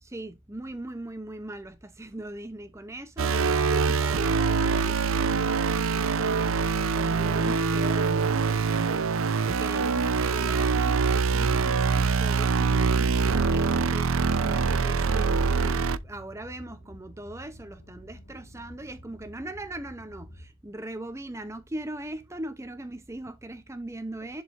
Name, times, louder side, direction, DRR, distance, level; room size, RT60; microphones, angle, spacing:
voice 1, 0.0-24.4, right 1 dB, 15° right, 0.6 m, -40 dB
sound 1, 3.2-16.0, right 5 dB, 80° right, 0.6 m, -24 dB
sound 2, 11.3-20.5, equal, 65° left, 1.8 m, -49 dB
10.5 x 4.8 x 2.5 m
head